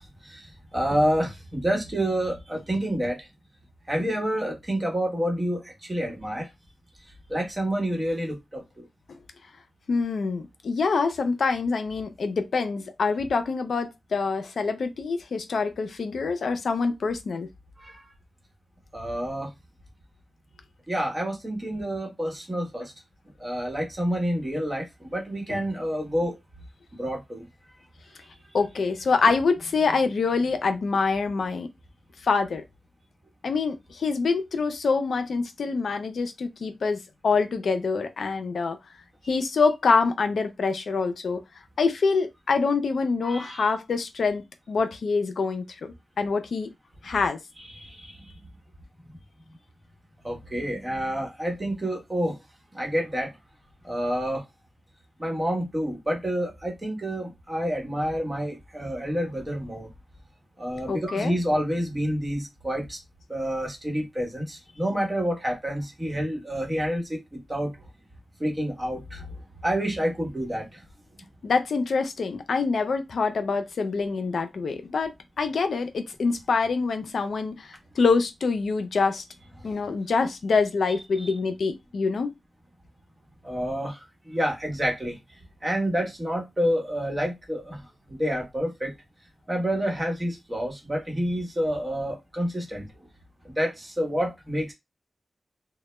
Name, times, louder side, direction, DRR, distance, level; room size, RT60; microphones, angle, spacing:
voice 1, 0.0-3.3 3.9-6.5 7.3-8.8 17.8-18.0 18.9-19.5 20.9-22.9 23.4-26.4 27.0-27.5 43.2-43.7 47.8-48.4 50.2-52.4 52.7-53.3 53.8-54.4 55.2-59.9 60.6-63.0 63.3-67.2 67.5-67.7 68.4-69.3 69.6-70.8 81.2-81.3 83.4-85.2 85.6-87.8 88.1-88.9 89.5-92.9 93.4-94.7, equal, 25° right, 1.0 m, -28 dB
voice 2, 9.9-17.5 25.5-25.6 28.5-31.7 32.2-32.6 33.4-38.8 39.3-41.4 41.8-46.7 47.0-47.4 60.9-61.4 71.4-79.2 79.6-82.3, left 4 dB, 80° left, 0.4 m, -25 dB
2.1 x 2.0 x 3.0 m
cardioid pair, 70°, 0 cm